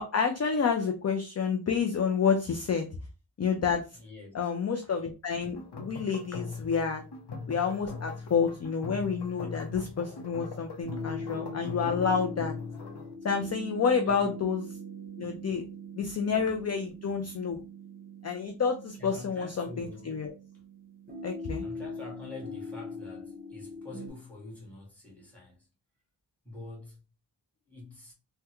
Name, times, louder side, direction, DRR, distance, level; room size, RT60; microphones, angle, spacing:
voice 1, 0.0-2.9 3.4-3.8 4.3-7.0 7.5-12.5 13.2-14.6 15.2-15.7 16.0-17.6 18.2-20.3 21.2-21.7, left 6 dB, 35° left, 0.4 m, -29 dB
voice 2, 4.0-4.4 4.8-4.9 6.2-6.3 14.0-14.3 19.0-20.2 21.6-25.7 26.4-27.0 27.7-28.1, left 3 dB, 5° left, 1.5 m, -46 dB
sound 1, 5.6-13.1, left 4 dB, 55° left, 0.8 m, -40 dB
sound 2, 10.8-24.1, equal, 20° right, 1.0 m, -42 dB
3.4 x 2.2 x 2.9 m
wide cardioid pair, 105°, 48 cm